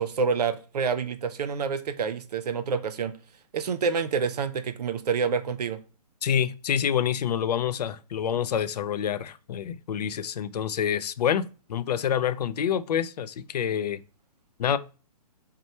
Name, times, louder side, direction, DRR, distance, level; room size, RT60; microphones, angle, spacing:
voice 1, 0.0-3.1 3.5-5.8, right 5 dB, 80° right, 0.5 m, -27 dB
voice 2, 6.2-11.4 11.7-14.0 14.6-14.8, left 9 dB, 80° left, 0.4 m, -27 dB
3.2 x 2.2 x 4.1 m
hypercardioid pair, 150°, 20 cm